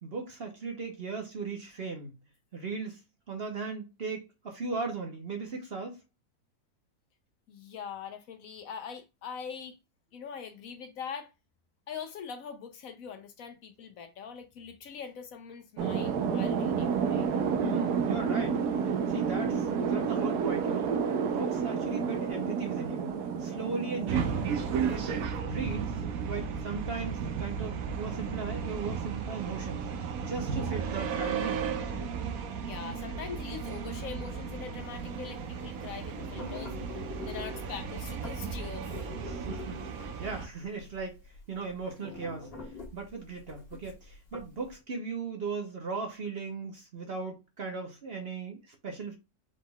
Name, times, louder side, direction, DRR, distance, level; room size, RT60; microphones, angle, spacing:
voice 1, 0.0-2.1 2.5-3.0 3.3-6.0 17.6-20.9 21.2-24.5 24.9-25.1 25.5-29.9 30.2-31.7 39.3-41.1 41.5-42.5 42.9-49.1, right 4 dB, 45° right, 1.0 m, -37 dB
voice 2, 7.5-9.8 10.1-11.3 11.9-17.3 24.9-25.0 32.6-36.7 37.2-38.9, left 7 dB, 70° left, 1.0 m, -42 dB
sound 1, 15.8-25.3, right 6 dB, 85° right, 1.3 m, -30 dB
sound 2, 24.1-40.5, right 6 dB, 70° right, 1.1 m, -34 dB
sound 3, 34.8-44.7, left 3 dB, 40° left, 1.7 m, -45 dB
5.1 x 3.7 x 2.3 m
omnidirectional pair, 1.6 m